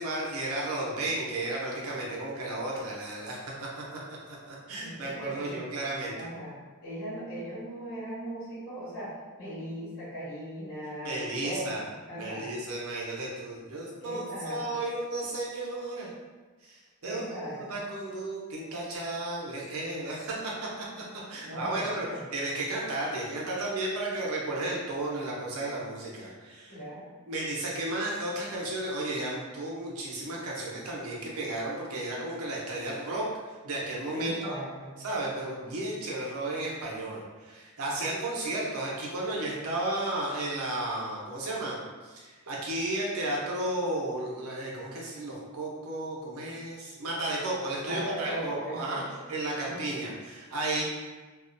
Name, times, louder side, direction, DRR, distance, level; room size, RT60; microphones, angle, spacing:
voice 1, 0.0-4.0 4.3-6.1 11.0-11.8 12.2-16.1 16.6-20.7 21.3-26.8 27.3-33.3 33.6-34.5 35.0-50.8, right 2 dB, 90° right, -3 dB, 0.6 m, -33 dB
voice 2, 4.8-5.6 6.1-12.5 14.0-14.6 17.0-17.8 21.4-22.3 26.7-27.1 34.1-34.9 47.8-49.2 49.6-49.9, equal, 90° left, -10 dB, 1.1 m, -38 dB
2.3 x 2.1 x 2.5 m, 1.3 s
head